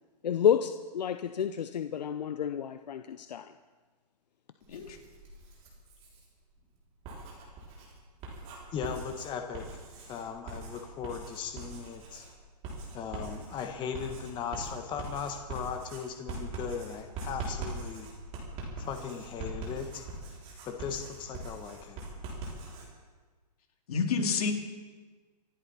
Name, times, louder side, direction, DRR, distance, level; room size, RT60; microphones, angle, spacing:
voice 1, 0.2-3.5, left 9 dB, 75° left, 9 dB, 0.7 m, -29 dB
Writing, 4.6-6.3 6.9-22.9, right 3 dB, 30° right, 5.8 m, -42 dB
voice 2, 8.7-9.8 10.1-12.2 12.9-18.1 18.8-20.0 20.7-22.0, left 7 dB, 20° left, 5 dB, 1.3 m, -38 dB
voice 3, 23.9-24.5, left 5 dB, 60° left, 2 dB, 2.9 m, -29 dB
26.5 x 11.0 x 4.3 m, 1.4 s
hypercardioid pair, 130°, 21 cm